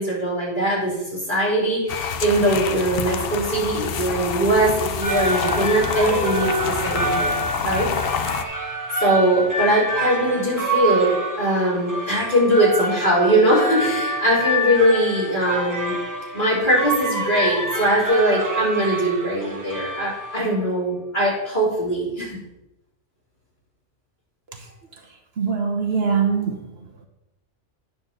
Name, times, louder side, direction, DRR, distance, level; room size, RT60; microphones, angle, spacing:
voice 1, 0.0-7.9 9.0-15.9 16.3-22.4, right 1 dB, 40° left, -7 dB, 4.1 m, -21 dB
sound 1, 1.9-8.4, left 6 dB, 60° left, 0.8 m, -27 dB
sound 2, 4.8-20.7, right 1 dB, 15° right, 0.9 m, -27 dB
voice 2, 25.4-26.6, right 6 dB, 60° right, 2 dB, 1.2 m, -22 dB
9.2 x 4.4 x 6.7 m, 0.91 s
omnidirectional pair, 1.3 m